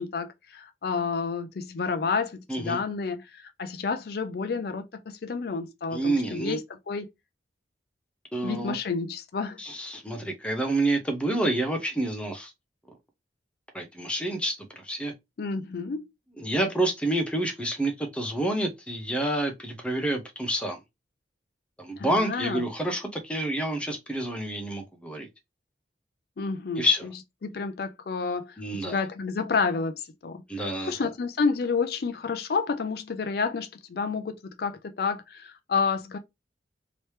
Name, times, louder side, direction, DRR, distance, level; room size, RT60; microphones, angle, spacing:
voice 1, 0.0-6.6 6.9-7.1 8.4-9.6 15.4-16.0 22.0-22.7 26.4-26.9 27.4-36.2, left 5 dB, 55° left, 0.4 m, -30 dB
voice 2, 5.9-6.6 8.3-8.8 9.6-12.5 13.7-15.1 16.4-20.8 21.8-25.3 26.8-27.1 28.6-29.0 30.5-31.1, right 1 dB, 5° left, 0.7 m, -28 dB
3.2 x 2.9 x 3.2 m
head